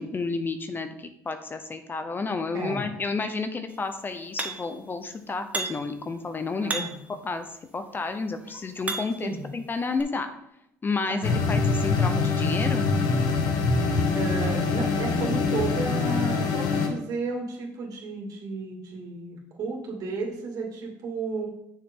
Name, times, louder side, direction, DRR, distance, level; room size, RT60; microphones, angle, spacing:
voice 1, 0.0-6.8 7.2-7.5 7.7-10.3 10.8-12.8, left 4 dB, 30° left, 8 dB, 0.8 m, -31 dB
sound 1, 4.4-4.8 5.5-6.0 6.7-7.1 7.9-9.3 10.0-10.1, right 3 dB, 20° right, 1.2 m, -33 dB
voice 2, 6.6-7.0 9.2-9.5 11.1-11.5 14.1-21.5, right 3 dB, 60° right, -1 dB, 2.6 m, -33 dB
sound 2, 11.2-16.9, left 4 dB, 75° left, 1.3 m, -24 dB
6.6 x 6.6 x 3.8 m, 0.83 s
supercardioid pair, 85°, 7 cm